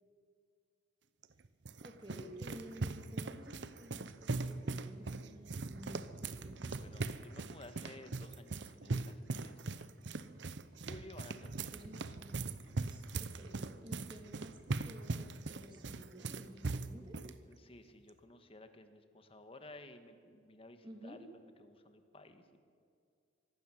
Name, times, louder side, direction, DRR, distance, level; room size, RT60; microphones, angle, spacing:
sound 1, 1.2-17.3, right 3 dB, 65° right, 0.8 m, -40 dB
voice 1, 1.8-6.7 11.7-13.5 13.8-17.2 20.8-21.3, equal, 25° right, 3 dB, 2.6 m, -53 dB
voice 2, 6.8-9.9 10.9-11.9 17.4-22.6, left 2 dB, 30° left, 8 dB, 1.5 m, -55 dB
24.5 x 12.0 x 9.2 m, 2.3 s
head